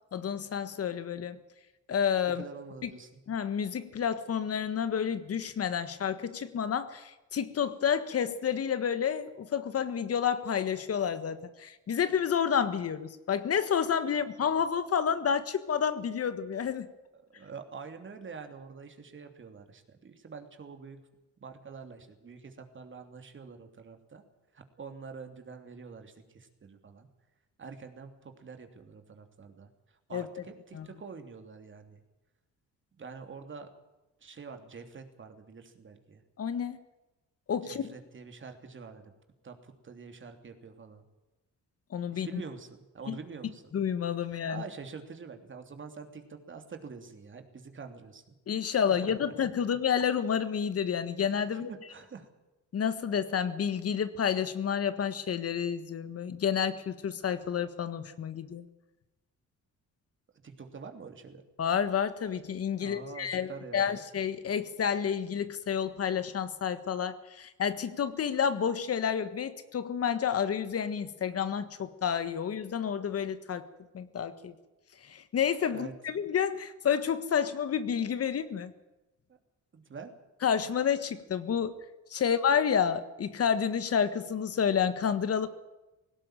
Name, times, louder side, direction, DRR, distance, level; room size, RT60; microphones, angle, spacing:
voice 1, 0.1-1.4 1.9-2.4 2.8-2.9 3.3-16.9 30.1-30.3 30.7-30.9 36.4-36.8 37.5-37.8 41.9-42.4 43.1-43.2 43.7-44.6 48.5-51.7 52.7-58.6 61.6-73.7 73.9-74.5 75.1-78.7 80.4-81.7 82.1-85.5, left 7 dB, 55° left, 12 dB, 1.5 m, -30 dB
voice 2, 2.3-3.2 17.1-21.0 21.4-24.2 24.5-27.1 27.6-29.7 30.1-32.0 33.0-33.7 34.2-36.2 37.6-39.1 39.4-41.0 42.1-43.7 44.5-48.4 49.0-49.3 51.5-52.3 60.4-61.4 62.8-64.0 75.7-75.9 79.3-79.4 79.7-80.1, right 5 dB, 40° right, 6 dB, 3.1 m, -46 dB
18.0 x 16.5 x 9.1 m, 1.0 s
cardioid pair, 90°, 30 cm